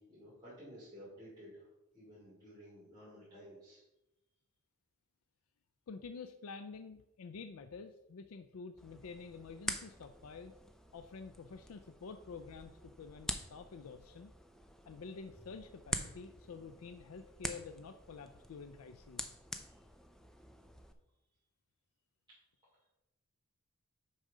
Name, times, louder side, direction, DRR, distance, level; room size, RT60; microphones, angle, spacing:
voice 1, 0.0-1.7 1.9-3.8 19.6-19.7, equal, 20° right, -11 dB, 2.7 m, -54 dB
voice 2, 5.9-10.5 10.9-14.3 14.9-19.3, left 5 dB, 85° left, 9 dB, 0.4 m, -49 dB
sound 1, 8.8-20.9, equal, ahead, 0.4 m, -46 dB
6.3 x 4.9 x 5.4 m, 0.92 s
head